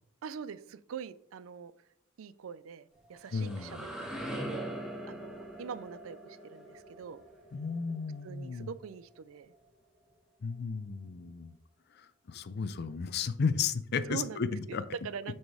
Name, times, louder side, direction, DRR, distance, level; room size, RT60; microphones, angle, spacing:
voice 1, 0.2-1.7 2.2-3.8 4.3-4.5 5.1-7.2 8.2-9.5 14.1-14.4 14.7-15.4, right 6 dB, 80° right, 16 dB, 0.4 m, -43 dB
sound 1, 3.0-8.7, right 1 dB, 5° right, 1.3 m, -42 dB
voice 2, 3.3-3.9 7.5-8.7 10.4-11.5 12.0-14.8, left 5 dB, 50° left, 13 dB, 0.5 m, -34 dB
6.3 x 4.4 x 4.7 m, 0.74 s
head